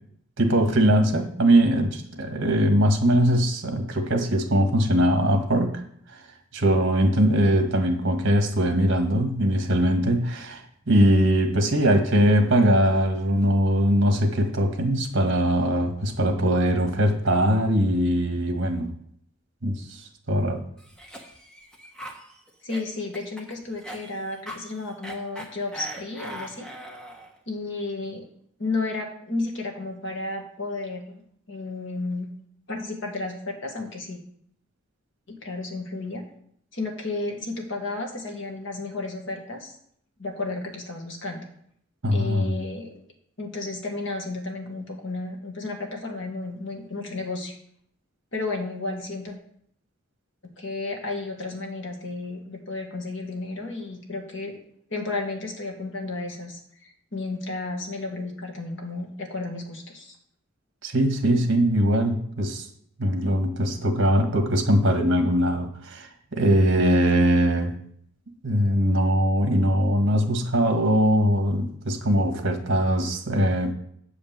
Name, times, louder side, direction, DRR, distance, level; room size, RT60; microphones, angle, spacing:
voice 1, 0.4-5.7 6.1-6.3 6.5-18.9 19.6-20.6 42.0-42.6 60.8-62.7 63.0-67.8 68.4-73.7, equal, 55° right, 5 dB, 1.6 m, -21 dB
voice 2, 7.3-7.6 22.6-26.7 27.5-28.2 28.6-31.2 31.5-32.3 32.7-34.2 35.3-36.2 36.7-39.7 40.2-41.4 42.1-43.0 43.4-47.5 48.3-49.3 50.6-54.5 54.9-60.2, left 3 dB, 60° left, 2 dB, 1.7 m, -32 dB
Cough, 20.8-27.4, right 1 dB, 5° left, 1.1 m, -41 dB
8.5 x 5.1 x 7.5 m, 0.67 s
head